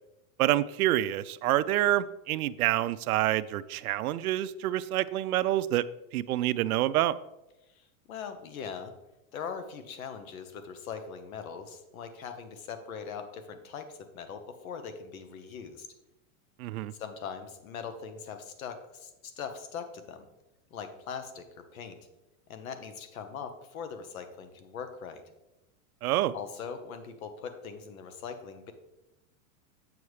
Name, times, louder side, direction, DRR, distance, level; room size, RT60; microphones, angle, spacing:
voice 1, 0.4-5.8 6.1-7.1 16.6-16.9 26.0-26.3, right 14 dB, 90° right, 14 dB, 0.5 m, -27 dB
voice 2, 7.7-8.9 9.3-15.9 17.0-20.2 20.7-22.0 22.5-25.2 26.3-28.7, left 6 dB, 75° left, 8 dB, 1.2 m, -41 dB
7.9 x 7.1 x 3.2 m, 0.94 s
supercardioid pair, 160°, 42 cm